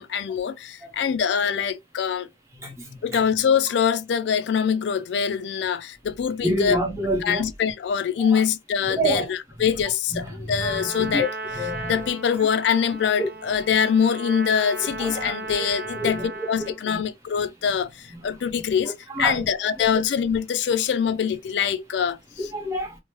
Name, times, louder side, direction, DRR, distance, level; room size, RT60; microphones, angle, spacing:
voice 1, 0.0-2.3 3.0-6.8 7.2-11.3 11.8-22.5, left 7 dB, 70° left, 0.3 m, -24 dB
voice 2, 6.4-7.4 8.2-8.3 8.9-9.3 11.0-11.3 11.5-12.0 13.2-13.3 15.0-15.7 16.0-16.3 16.6-16.7 18.2-18.3 19.1-19.4 22.4-23.0, equal, 15° right, 0.7 m, -26 dB
Trumpet, 10.6-16.8, right 2 dB, 55° right, 0.5 m, -36 dB
3.0 x 2.0 x 3.0 m
head